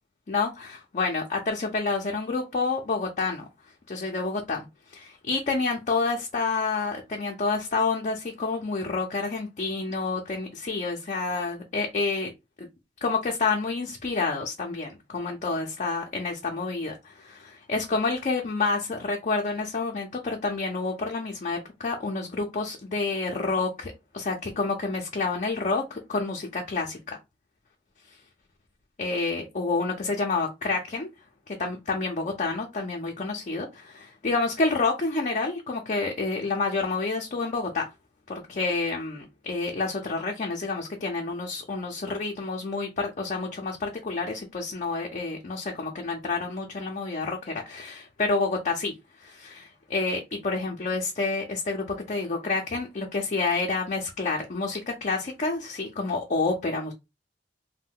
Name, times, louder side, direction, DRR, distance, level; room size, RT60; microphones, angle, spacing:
voice 1, 0.3-3.4 3.9-4.7 4.9-12.3 12.6-12.7 13.0-27.2 29.0-31.1 31.5-37.9 38.3-56.9, left 3 dB, 45° left, 0.5 m, -29 dB
2.6 x 2.1 x 3.6 m
head